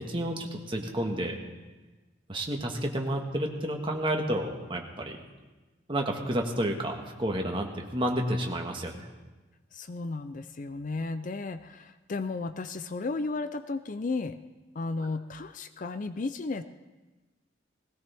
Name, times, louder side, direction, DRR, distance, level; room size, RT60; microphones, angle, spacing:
voice 1, 0.0-1.4 2.3-5.2 5.9-9.1, right 1 dB, 25° right, 2 dB, 1.6 m, -30 dB
voice 2, 9.7-14.4 14.7-16.6, left 3 dB, 45° left, 11 dB, 0.5 m, -34 dB
19.5 x 17.0 x 3.5 m, 1.2 s
head